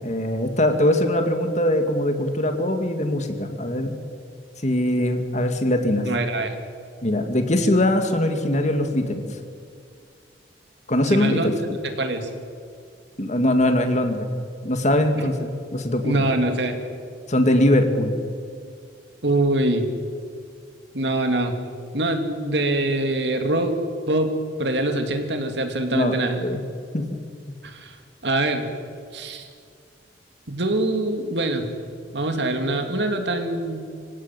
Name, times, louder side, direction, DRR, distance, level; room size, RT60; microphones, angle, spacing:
voice 1, 0.0-4.0 4.6-6.1 7.0-9.2 10.9-11.5 13.2-14.3 14.6-16.2 17.3-18.2 25.9-26.2 26.4-26.6 26.9-27.1, left 1 dB, 40° left, 6 dB, 2.3 m, -21 dB
voice 2, 6.0-6.6 11.1-11.5 11.8-12.3 15.2-15.3 16.0-16.8 19.2-19.9 20.9-21.6 21.9-23.8 24.1-24.3 24.6-26.4 27.6-28.0 28.2-28.7 29.1-29.5 30.5-31.7 32.1-33.8, right 2 dB, 70° right, 5 dB, 2.8 m, -24 dB
25.5 x 16.5 x 9.2 m, 2.2 s
head